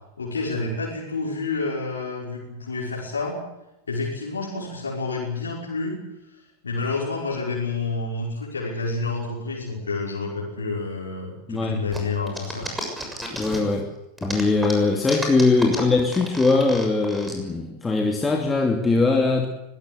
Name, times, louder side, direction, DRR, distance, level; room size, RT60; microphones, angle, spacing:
voice 1, 0.2-3.4 3.9-6.0 6.6-12.7 12.9-13.5, left 3 dB, 70° left, -4 dB, 5.7 m, -29 dB
voice 2, 11.5-11.8 13.3-13.9 14.2-19.5, left 3 dB, 10° left, 2 dB, 2.6 m, -21 dB
sound 1, 11.9-13.8 14.2-17.3, equal, 5° right, 6.8 m, -32 dB
24.0 x 18.5 x 8.1 m, 0.93 s
figure-of-eight pair, 90°, 0 cm